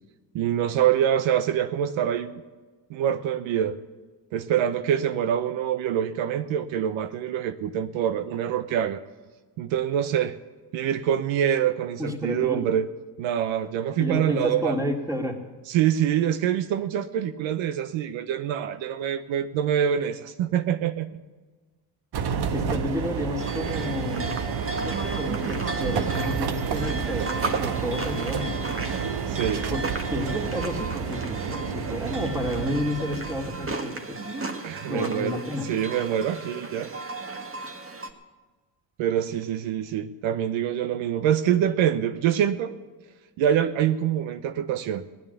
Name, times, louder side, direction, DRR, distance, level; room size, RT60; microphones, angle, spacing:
voice 1, 0.3-2.4 2.9-3.8 4.3-9.0 9.6-10.4 10.7-12.9 13.2-14.8 15.7-21.1 23.7-23.8 29.3-29.6 34.6-35.4 35.6-36.9 39.0-42.7 43.4-45.0, right 10 dB, 75° right, 11 dB, 0.9 m, -25 dB
voice 2, 12.0-12.6 14.0-15.4 22.5-24.4 24.8-28.8 29.7-34.2 34.9-35.7, left 1 dB, 5° right, 2 dB, 3.0 m, -31 dB
sound 1, 22.1-33.7, right 7 dB, 55° right, 1.2 m, -30 dB
sound 2, 23.4-38.1, right 2 dB, 25° right, 1.9 m, -35 dB
16.0 x 10.5 x 8.2 m, 1.3 s
supercardioid pair, 75°, 47 cm